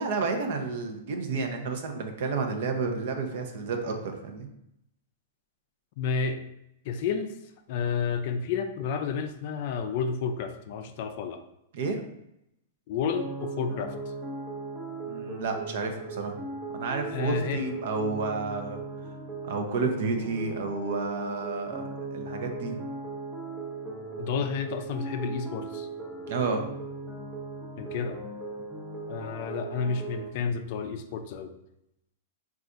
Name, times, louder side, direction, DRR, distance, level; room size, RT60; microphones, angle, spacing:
voice 1, 0.0-4.5 11.7-12.0 15.1-16.4 16.7-18.8 19.4-21.8 22.1-22.8 26.3-26.7, right 4 dB, 60° right, 4 dB, 0.6 m, -31 dB
voice 2, 6.0-6.4 6.8-7.4 7.7-11.4 12.9-14.0 17.1-17.6 24.2-25.9 27.8-28.2 29.1-31.6, left 5 dB, 50° left, 7 dB, 0.4 m, -31 dB
sound 1, 13.1-30.3, right 3 dB, 15° right, 0.5 m, -38 dB
4.1 x 2.4 x 2.5 m, 0.80 s
hypercardioid pair, 150°, 0 cm